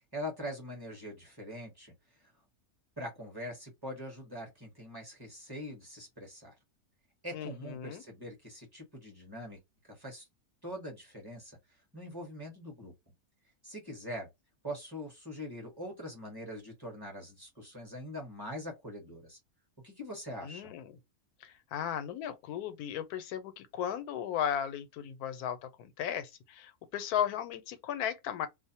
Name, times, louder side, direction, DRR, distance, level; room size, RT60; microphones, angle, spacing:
voice 1, 0.1-1.9 2.2-2.3 3.0-6.5 7.2-9.6 9.9-10.3 10.6-11.6 11.9-12.9 13.6-14.3 14.6-19.4 19.8-20.7, equal, 20° right, 0.8 m, -43 dB
voice 2, 7.3-8.0 20.4-20.9 21.4-28.5, left 9 dB, 90° left, 1.1 m, -36 dB
2.5 x 2.0 x 2.7 m
omnidirectional pair, 1.6 m